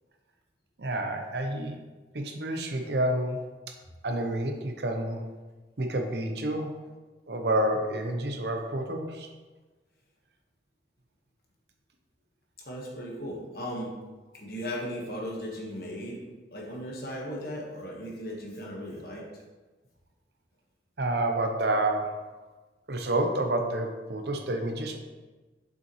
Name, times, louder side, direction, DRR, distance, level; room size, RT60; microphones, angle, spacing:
voice 1, 0.8-1.8 2.1-3.4 4.0-5.2 5.8-6.7 7.3-9.3 21.0-22.2 22.9-25.0, right 1 dB, 70° right, 4 dB, 0.8 m, -29 dB
voice 2, 12.6-13.9 14.3-16.2 16.5-19.2, equal, 55° left, -2 dB, 1.4 m, -37 dB
6.8 x 5.6 x 3.1 m, 1.2 s
head